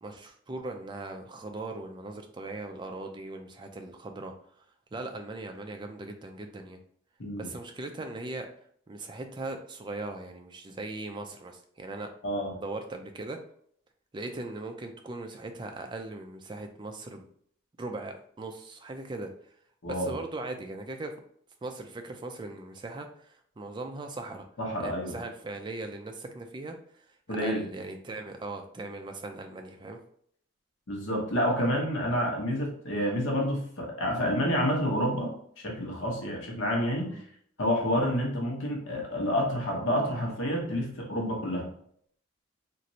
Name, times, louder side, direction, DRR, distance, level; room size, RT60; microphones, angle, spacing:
voice 1, 0.0-4.3 4.9-6.8 7.3-8.5 8.9-12.1 12.6-13.4 14.1-17.3 17.8-19.3 19.9-21.1 21.6-24.5 24.8-26.8 27.4-30.0 37.0-37.3, right 2 dB, 25° right, 5 dB, 0.3 m, -39 dB
voice 2, 12.2-12.5 19.8-20.2 24.6-25.1 27.3-27.6 30.9-35.3 35.6-37.2 37.6-41.7, equal, 80° left, 0 dB, 0.9 m, -29 dB
3.0 x 2.5 x 2.7 m, 0.63 s
head